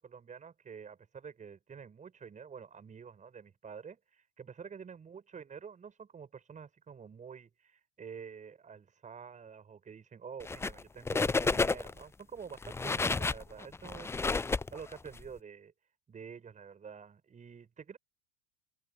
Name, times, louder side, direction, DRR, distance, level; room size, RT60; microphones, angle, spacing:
voice 1, 0.0-14.4 14.7-15.7 16.1-18.0, right 6 dB, 25° right, 7.9 m, -48 dB
sound 1, 10.4-10.8 11.1-12.0 12.5-15.2, left 3 dB, 10° left, 0.6 m, -31 dB
open air
hypercardioid pair, 85°, 31 cm